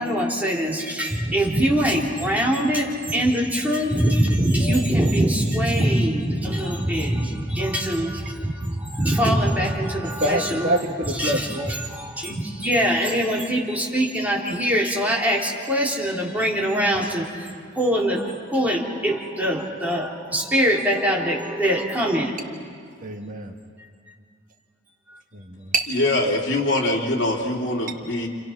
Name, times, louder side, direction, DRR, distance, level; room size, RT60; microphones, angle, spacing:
voice 1, 0.0-10.8 11.1-17.5 17.7-22.3, equal, 10° right, -4 dB, 3.8 m, -23 dB
voice 2, 10.2-11.7 23.0-23.5 25.3-25.9, right 1 dB, 45° right, 3 dB, 1.8 m, -26 dB
voice 3, 25.9-28.3, left 2 dB, 70° left, -2 dB, 3.3 m, -23 dB
29.5 x 28.0 x 6.0 m, 2.1 s
head